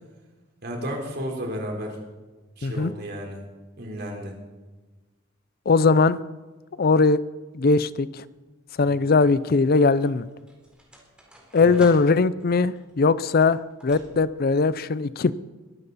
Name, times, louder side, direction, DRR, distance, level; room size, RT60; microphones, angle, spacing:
voice 1, 0.6-2.0 2.6-3.5 3.8-4.4 8.8-8.9 11.6-11.8, equal, 55° right, 0 dB, 4.0 m, -33 dB
voice 2, 5.7-6.2 6.8-7.2 7.5-8.2 8.8-10.3 11.5-15.3, left 4 dB, 50° left, 17 dB, 0.5 m, -20 dB
sound 1, 9.3-14.5, right 1 dB, 5° right, 4.0 m, -51 dB
22.5 x 12.5 x 4.2 m, 1.3 s
head